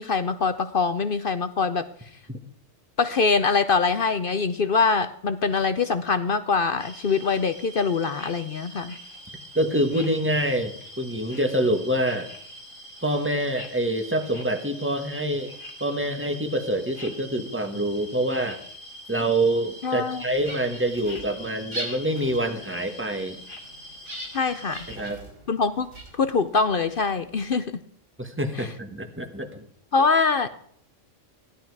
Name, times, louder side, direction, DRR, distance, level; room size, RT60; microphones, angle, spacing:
voice 1, 0.0-1.8 3.0-9.0 19.8-20.2 24.3-24.9 25.5-25.9 26.2-27.8 28.5-28.7 29.9-30.5, left 4 dB, 50° left, 11 dB, 0.8 m, -23 dB
sound 1, 6.8-25.0, equal, 25° left, 2.4 m, -43 dB
voice 2, 9.5-12.3 13.0-15.5 15.8-18.6 19.1-23.4 24.9-25.2 28.2-29.6, right 1 dB, 10° right, 6 dB, 1.4 m, -26 dB
sound 2, 20.1-27.5, right 1 dB, 65° right, 3.8 m, -42 dB
15.5 x 11.5 x 4.7 m, 0.63 s
omnidirectional pair, 1.3 m